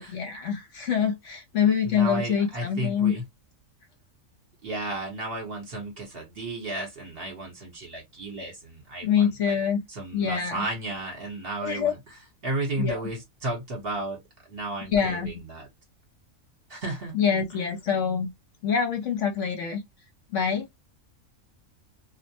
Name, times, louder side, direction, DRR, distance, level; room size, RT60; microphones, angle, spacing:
voice 1, 0.0-3.1 9.0-9.8 10.1-10.7 11.6-11.9 12.8-13.0 14.9-15.3 17.1-18.3 18.6-19.8 20.3-20.7, left 7 dB, 65° left, 1.0 m, -25 dB
voice 2, 1.8-3.2 4.6-9.6 9.9-15.7 16.7-17.1, right 2 dB, 45° right, 1.2 m, -34 dB
2.4 x 2.1 x 2.7 m
omnidirectional pair, 1.4 m